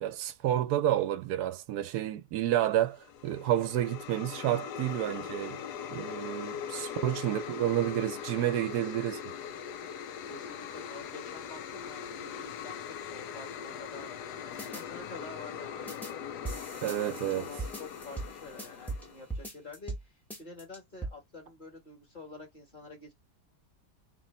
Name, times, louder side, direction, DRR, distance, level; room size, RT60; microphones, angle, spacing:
voice 1, 0.0-5.6 5.9-9.3 16.8-17.5, right 12 dB, 80° right, 1.1 m, -30 dB
sound 1, 2.9-19.3, left 8 dB, 85° left, 1.2 m, -41 dB
voice 2, 6.5-7.3 8.7-9.1 10.3-14.1 14.5-20.1 20.4-23.1, left 3 dB, 30° left, 1.4 m, -48 dB
sound 2, 14.6-14.8 15.9-16.1 16.4-19.0 19.3-20.0 20.3-21.1, right 2 dB, ahead, 0.8 m, -39 dB
3.1 x 3.0 x 4.1 m
omnidirectional pair, 1.7 m